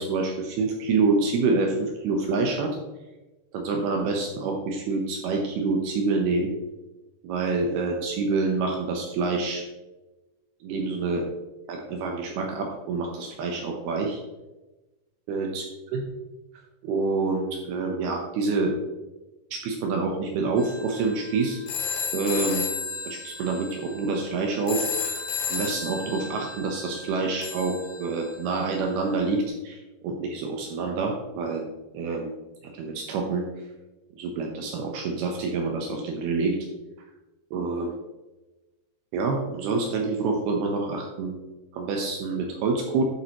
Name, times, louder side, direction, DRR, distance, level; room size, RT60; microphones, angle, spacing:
voice 1, 0.0-2.8 3.5-6.5 7.2-9.6 10.6-11.3 11.7-14.2 15.3-15.7 15.9-16.0 16.8-18.7 19.5-21.6 22.1-22.6 23.0-31.6 31.9-32.3 32.6-33.5 34.2-36.6 37.5-37.9 39.1-41.3 41.7-43.0, right 3 dB, 75° right, 2 dB, 2.5 m, -27 dB
sound 1, 20.6-28.6, left 5 dB, 75° left, 3.1 m, -33 dB
12.0 x 7.4 x 3.0 m, 1.1 s
omnidirectional pair, 5.3 m